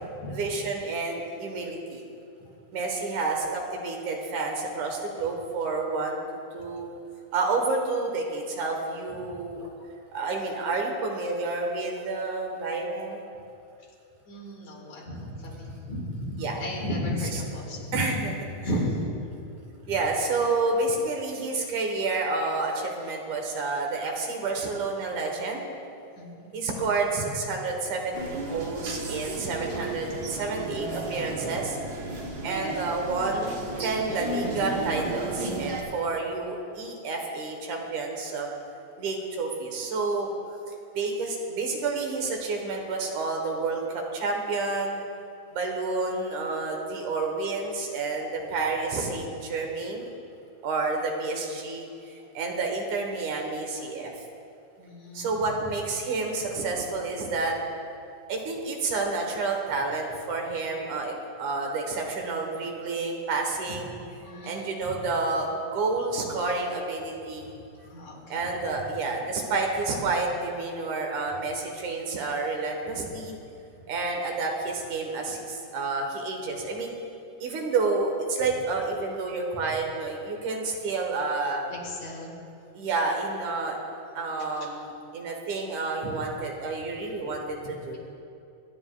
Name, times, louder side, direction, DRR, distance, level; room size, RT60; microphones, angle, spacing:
voice 1, 0.3-2.0 2.7-6.2 6.5-6.9 7.3-9.6 10.1-13.2 16.4-16.6 17.9-18.3 19.9-25.6 26.5-31.8 32.4-38.6 39.0-40.6 40.9-45.0 45.5-50.1 50.6-54.1 55.1-57.6 58.3-63.9 64.4-67.5 68.3-73.4 73.9-76.9 77.4-81.7 82.7-83.8 84.1-87.4 87.7-88.0, right 3 dB, 80° right, 2 dB, 2.8 m, -29 dB
voice 2, 14.3-18.0 18.6-19.1 19.8-20.0 26.2-26.5 54.8-55.3 63.7-63.8 64.2-64.9 67.8-68.5 73.0-73.1 81.7-82.3, left 1 dB, 70° left, -3 dB, 3.6 m, -34 dB
sound 1, 28.1-35.8, right 2 dB, 55° right, 1.1 m, -33 dB
24.5 x 10.5 x 2.4 m, 2.6 s
omnidirectional pair, 3.4 m